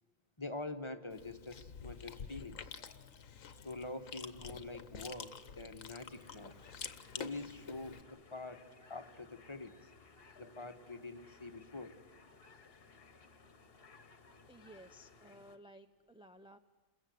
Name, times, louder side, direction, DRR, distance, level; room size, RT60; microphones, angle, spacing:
voice 1, 0.4-2.7 3.5-6.5 7.1-8.6 8.9-9.7 10.4-12.0, left 2 dB, 20° left, 8 dB, 1.3 m, -45 dB
Chewing mastication, 1.1-8.0, left 7 dB, 75° left, 1.5 m, -48 dB
sound 1, 6.1-15.6, left 4 dB, 45° left, 1.5 m, -60 dB
voice 2, 14.5-16.6, equal, 5° right, 7 dB, 0.5 m, -56 dB
28.5 x 21.0 x 9.4 m, 1.2 s
omnidirectional pair, 1.4 m